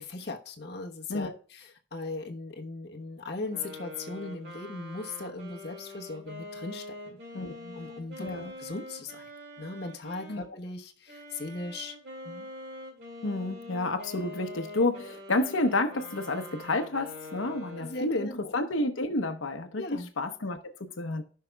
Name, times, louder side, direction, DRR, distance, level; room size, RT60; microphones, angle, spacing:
voice 1, 0.0-8.3 8.6-9.3 9.6-11.9 12.2-12.5 17.8-18.5 19.8-20.1, left 3 dB, 55° left, 1.1 m, -39 dB
sound 1, 3.5-10.5 11.1-18.2, left 1 dB, 55° right, 2.3 m, -44 dB
voice 2, 8.2-8.5 10.3-10.4 13.2-19.8 20.2-21.2, left 2 dB, 85° left, 0.9 m, -30 dB
16.0 x 5.7 x 2.3 m
head